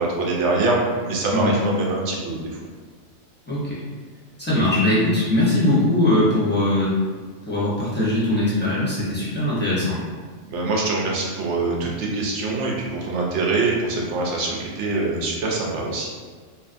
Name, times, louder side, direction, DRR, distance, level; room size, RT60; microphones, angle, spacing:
voice 1, 0.0-2.4 10.5-16.1, right 3 dB, 75° right, -2 dB, 0.8 m, -24 dB
voice 2, 1.3-1.6 3.5-3.8 4.4-7.0 7.4-10.0, left 1 dB, 10° left, -9 dB, 0.5 m, -21 dB
2.5 x 2.5 x 2.4 m, 1.5 s
omnidirectional pair, 1.3 m